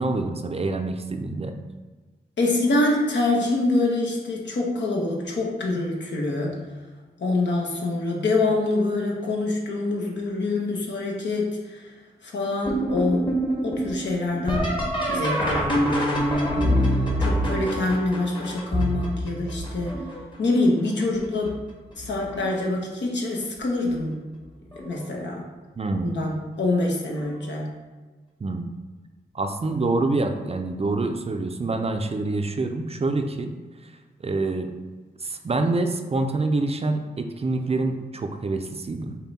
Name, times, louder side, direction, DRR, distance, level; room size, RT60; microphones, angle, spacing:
voice 1, 0.0-1.5 25.8-26.2 28.4-28.7 29.3-33.5 33.8-33.9 34.2-34.7 35.2-39.2, right 2 dB, 35° right, 6 dB, 0.4 m, -26 dB
voice 2, 2.4-6.5 7.2-11.9 12.2-13.3 13.6-14.7 15.1-16.8 17.2-20.0 20.4-21.6 22.0-24.2 24.7-25.4 26.0-27.7, left 2 dB, 80° left, -1 dB, 1.0 m, -25 dB
sound 1, 12.7-20.3 21.0-21.5 22.0-22.6 23.9-24.0 24.7-25.0 27.2-27.3 29.6-29.7, equal, 25° left, 1.2 m, -26 dB
5.4 x 2.2 x 4.1 m, 1.4 s
cardioid pair, 55°, 18 cm